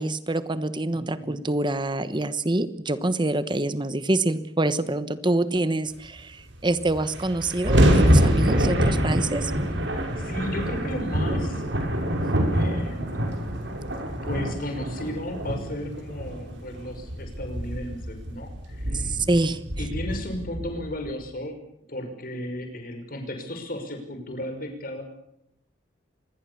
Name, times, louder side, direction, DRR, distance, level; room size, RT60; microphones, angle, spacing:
voice 1, 0.0-9.5 18.9-19.6, right 2 dB, 25° right, 13 dB, 1.1 m, -26 dB
voice 2, 0.9-1.4 9.9-11.7 12.5-13.3 14.2-19.2 19.8-21.6 21.9-25.0, left 1 dB, 50° left, 6 dB, 5.7 m, -35 dB
sound 1, 6.5-6.6 6.8-21.1, equal, 85° right, 6.0 m, -25 dB
26.0 x 21.0 x 7.1 m, 0.77 s
head